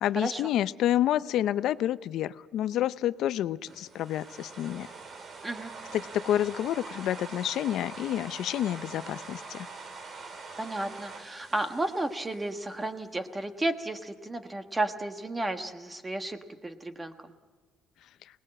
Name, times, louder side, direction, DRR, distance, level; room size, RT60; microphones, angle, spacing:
voice 1, 0.0-4.9 5.9-9.7, left 12 dB, 65° left, 15 dB, 0.6 m, -29 dB
sound 1, 3.7-12.9, right 4 dB, 40° right, 2.2 m, -44 dB
voice 2, 10.6-17.3, right 2 dB, 15° right, 7 dB, 1.4 m, -33 dB
25.5 x 19.5 x 7.7 m, 1.4 s
cardioid pair, 140°, 0 cm